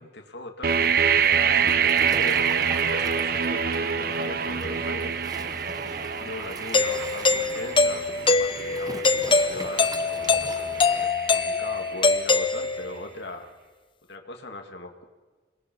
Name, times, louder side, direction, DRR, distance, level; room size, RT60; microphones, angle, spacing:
voice 1, 0.0-5.2 5.8-10.4 11.0-13.5 14.1-15.0, left 2 dB, 65° left, 4 dB, 2.3 m, -40 dB
sound 1, 0.6-12.4, right 7 dB, 50° right, 0.8 m, -26 dB
Waves surf, 0.7-11.0, right 2 dB, 20° right, 0.9 m, -41 dB
Doorbell, 6.7-13.1, left 4 dB, 25° left, 0.7 m, -23 dB
27.5 x 20.5 x 5.4 m, 1.3 s
head